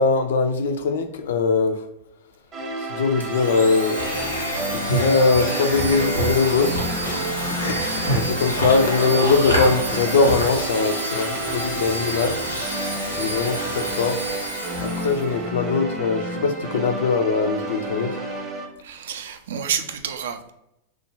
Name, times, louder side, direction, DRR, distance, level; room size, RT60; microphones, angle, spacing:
voice 1, 0.0-1.8 2.9-4.0 4.7-6.8 8.1-12.4 13.2-14.2 14.8-18.2, left 4 dB, 60° left, 0.4 m, -21 dB
sound 1, 2.5-18.7, right 2 dB, 30° right, 0.7 m, -31 dB
Domestic sounds home sounds, 3.2-15.3, right 1 dB, 90° right, 0.7 m, -31 dB
sound 2, 4.0-15.7, equal, 85° left, 0.8 m, -29 dB
voice 2, 18.8-20.5, right 8 dB, 60° right, 0.3 m, -30 dB
3.2 x 2.1 x 3.3 m
figure-of-eight pair, 90°, 0 cm